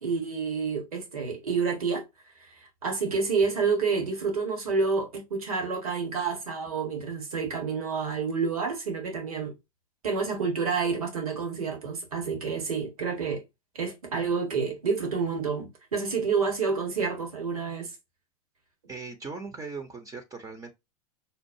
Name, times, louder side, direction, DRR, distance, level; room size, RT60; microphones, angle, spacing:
voice 1, 0.0-2.0 2.4-9.5 10.0-13.4 13.7-17.9, right 5 dB, 80° right, 1.7 m, -29 dB
voice 2, 18.9-20.7, right 4 dB, 20° right, 0.8 m, -39 dB
5.5 x 2.4 x 2.7 m
hypercardioid pair, 105°, 18 cm